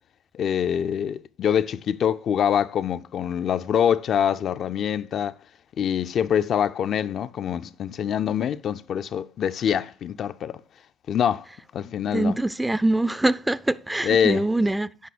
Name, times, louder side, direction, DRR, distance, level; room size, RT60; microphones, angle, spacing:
voice 1, 0.3-5.3 5.8-10.6 11.1-11.5 11.7-12.4 14.0-14.4, left 8 dB, 50° left, 0.5 m, -24 dB
voice 2, 12.1-15.1, right 2 dB, 10° right, 0.5 m, -24 dB
8.6 x 5.5 x 7.1 m
figure-of-eight pair, 50°, 0 cm